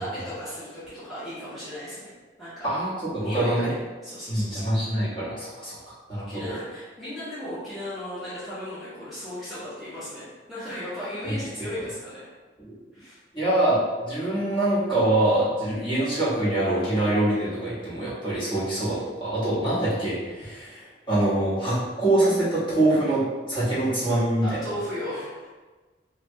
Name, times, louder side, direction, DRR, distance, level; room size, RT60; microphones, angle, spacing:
voice 1, 0.0-2.1 2.4-2.7 3.2-3.8 4.0-4.7 6.1-12.2 12.9-13.2 24.1-25.5, left 1 dB, ahead, -13 dB, 0.8 m, -36 dB
voice 2, 2.6-3.7 4.3-5.7 6.1-6.5 11.2-11.3 12.6-12.7 13.3-24.6, right 1 dB, 30° left, -10 dB, 1.2 m, -24 dB
3.2 x 2.2 x 2.7 m, 1.3 s
head